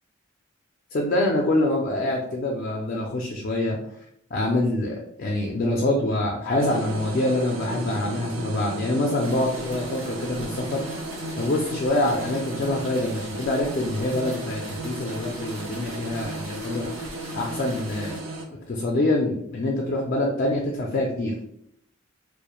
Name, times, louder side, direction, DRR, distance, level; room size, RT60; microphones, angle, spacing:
voice 1, 0.9-3.8 4.3-10.8 11.4-16.9 17.3-18.2 18.7-21.3, left 1 dB, 45° left, 0 dB, 0.3 m, -25 dB
sound 1, 6.6-18.4, right 2 dB, 75° right, 0.4 m, -35 dB
sound 2, 9.2-18.2, right 1 dB, 55° right, 1.2 m, -43 dB
2.9 x 2.0 x 2.3 m, 0.71 s
head